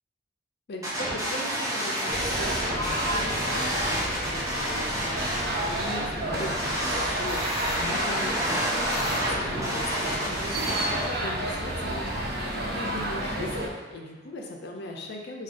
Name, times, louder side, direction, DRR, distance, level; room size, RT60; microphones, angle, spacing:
voice 1, 0.7-13.6 13.9-15.4, left 2 dB, 60° left, 1 dB, 0.5 m, -39 dB
sound 1, 0.8-11.0, equal, 15° right, 0.7 m, -30 dB
sound 2, 2.1-13.7, right 1 dB, 55° right, 0.5 m, -31 dB
4.6 x 2.3 x 2.5 m, 1.4 s
head